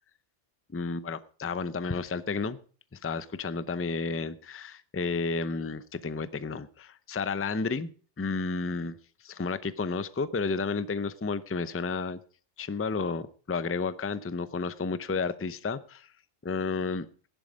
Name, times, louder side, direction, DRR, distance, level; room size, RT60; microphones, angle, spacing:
voice 1, 0.7-2.6 2.9-7.9 8.2-9.0 9.2-12.2 12.6-16.1 16.4-17.1, left 4 dB, 15° left, 15 dB, 0.4 m, -31 dB
15.5 x 11.0 x 5.1 m, 0.42 s
omnidirectional pair, 1.2 m